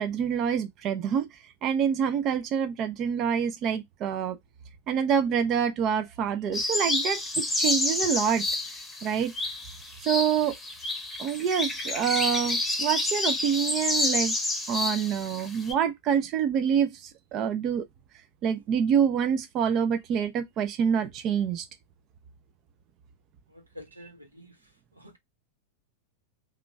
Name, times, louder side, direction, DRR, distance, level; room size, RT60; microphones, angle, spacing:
voice 1, 0.0-4.4 4.9-8.5 9.0-9.3 10.0-10.6 11.2-14.4 14.6-17.9 18.4-21.6, right 8 dB, 35° right, 0.5 m, -26 dB
sound 1, 6.5-15.7, left 2 dB, 10° left, 0.9 m, -29 dB
voice 2, 23.5-24.5 24.9-25.2, left 1 dB, 90° right, 1.0 m, -48 dB
2.9 x 2.4 x 4.3 m
figure-of-eight pair, 90°, 0 cm